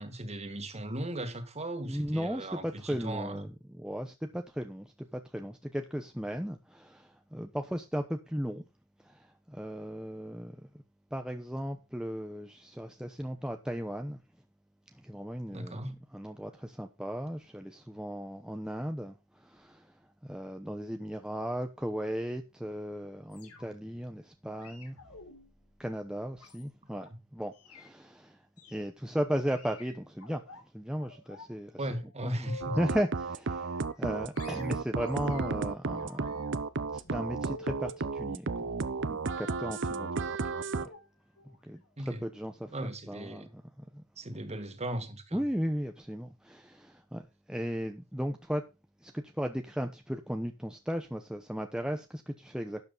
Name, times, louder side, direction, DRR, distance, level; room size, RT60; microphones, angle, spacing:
voice 1, 0.0-3.5 15.5-16.0 31.8-32.8 42.0-42.2 42.7-43.5 44.2-45.4, right 1 dB, 30° right, 2.1 m, -37 dB
voice 2, 1.8-8.6 9.0-10.7 11.1-14.2 14.9-15.8 16.1-19.9 20.2-25.0 25.8-28.4 28.7-30.4 30.7-31.7 32.2-32.5 32.8-36.4 36.9-38.7 39.1-40.3 40.8-40.9 41.4-42.7 43.1-44.0 45.3-48.6 49.0-52.8, equal, 5° right, 0.9 m, -36 dB
sound 1, 23.3-23.9 24.6-27.1 27.5-27.9 28.6-28.9 29.5-30.6 31.0-31.5 31.8-33.1 33.5-34.1 34.4-35.7 36.0-38.1 39.2-39.7 40.4-40.5 40.8-41.0 41.4-41.6 41.9-42.0, left 3 dB, 90° left, 3.7 m, -50 dB
sound 2, 32.6-40.9, right 4 dB, 55° right, 0.8 m, -33 dB
12.0 x 8.7 x 4.0 m
head